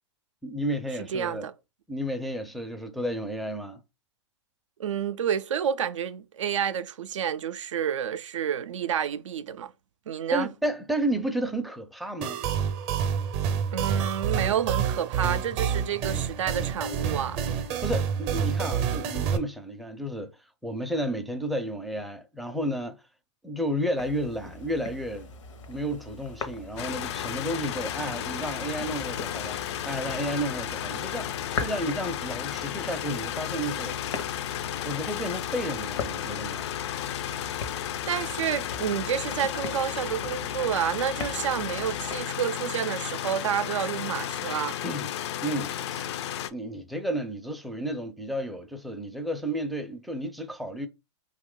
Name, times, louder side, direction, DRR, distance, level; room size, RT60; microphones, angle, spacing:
voice 1, 0.4-1.5 1.9-3.8 10.3-12.4 17.8-23.0 23.4-25.3 25.7-31.3 31.6-34.0 34.8-36.7 44.8-45.1 45.4-46.1 46.5-50.9, equal, ahead, 0.4 m, -32 dB
voice 2, 1.1-1.5 4.8-9.7 10.1-10.5 13.7-17.4 38.1-44.8, right 9 dB, 85° right, 0.4 m, -29 dB
sound 1, 12.2-19.4, right 7 dB, 40° right, 0.6 m, -28 dB
sound 2, 24.0-42.2, left 4 dB, 80° left, 0.8 m, -41 dB
sound 3, 26.8-46.5, left 11 dB, 65° left, 0.4 m, -33 dB
2.9 x 2.4 x 3.6 m
hypercardioid pair, 125°, 16 cm